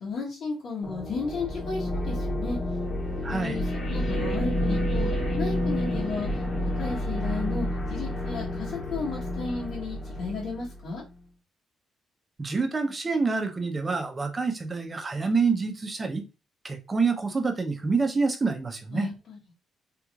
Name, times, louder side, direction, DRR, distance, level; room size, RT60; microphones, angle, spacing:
voice 1, 0.0-2.6 3.3-5.1 5.4-6.4 6.8-11.0 18.9-19.4, left 4 dB, 70° left, 1.2 m, -34 dB
sound 1, 0.8-11.0, left 1 dB, 50° left, 1.2 m, -29 dB
voice 2, 3.2-3.6 12.4-16.2 16.6-19.1, right 4 dB, 30° right, 0.7 m, -27 dB
3.4 x 3.1 x 2.4 m
cardioid pair, 90°, 0 cm